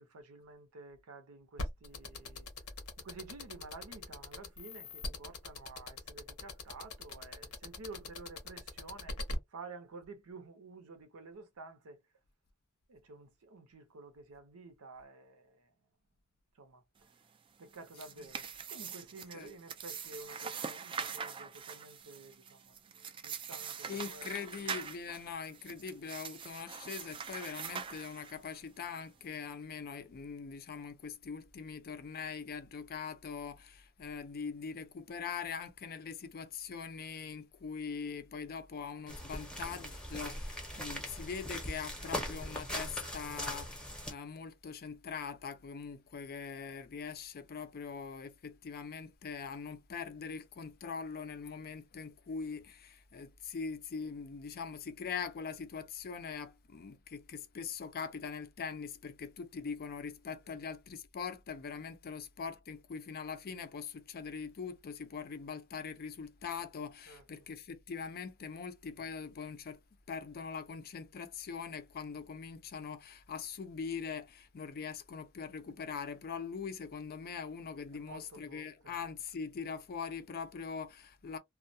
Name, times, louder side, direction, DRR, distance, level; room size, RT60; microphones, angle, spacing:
voice 1, 0.0-2.5 3.0-9.2 9.5-12.0 12.9-15.7 16.6-16.8 17.6-24.6 67.1-67.2 77.9-78.9, right 3 dB, 75° right, 0.7 m, -51 dB
sound 1, 1.6-9.3, left 2 dB, 90° left, 0.8 m, -41 dB
sound 2, 17.7-28.6, right 6 dB, 25° right, 0.3 m, -43 dB
voice 2, 23.9-69.8 70.1-81.4, left 6 dB, 45° left, 0.4 m, -42 dB
sound 3, 39.1-44.1, equal, 5° left, 0.7 m, -40 dB
2.2 x 2.1 x 2.6 m
head